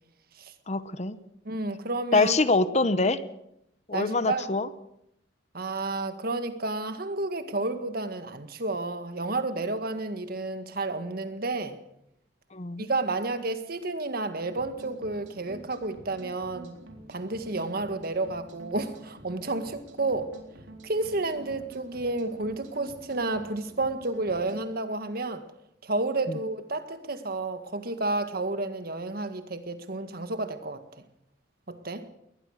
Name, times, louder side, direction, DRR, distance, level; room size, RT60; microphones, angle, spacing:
voice 1, 0.7-1.2 2.1-3.2 3.9-4.7 12.5-12.9 26.3-26.4, left 3 dB, 40° left, 0.9 m, -24 dB
voice 2, 1.5-2.3 3.9-4.5 5.5-11.8 12.8-16.8 17.1-20.3 20.8-25.4 25.8-30.8 31.7-32.0, right 2 dB, 55° right, 1.7 m, -31 dB
sound 1, 14.4-24.6, right 2 dB, 75° right, 3.9 m, -48 dB
21.5 x 19.5 x 6.5 m
head